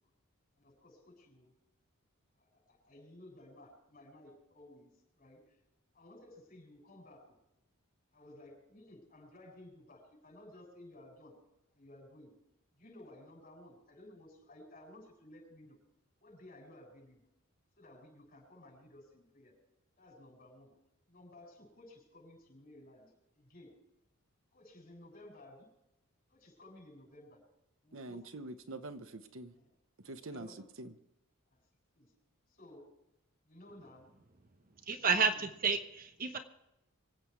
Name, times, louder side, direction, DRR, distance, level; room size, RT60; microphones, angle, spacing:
voice 1, 0.6-1.5 2.4-5.6 5.9-7.4 8.1-11.3 11.7-12.3 12.8-15.8 16.2-17.2 17.8-19.5 20.0-20.7 21.1-23.7 24.5-25.7 26.3-27.4 27.8-28.3 29.6-29.7 30.2-30.7 31.5-31.6 31.9-32.1 32.5-32.9 33.4-34.1 34.9-35.2, left 1 dB, 40° left, -1 dB, 7.3 m, -56 dB
voice 2, 27.9-29.5 30.0-30.5 30.8-30.9, right 2 dB, 65° right, 10 dB, 0.9 m, -45 dB
voice 3, 34.9-36.4, right 5 dB, 40° right, 7 dB, 1.0 m, -31 dB
25.5 x 8.5 x 4.7 m, 0.89 s
head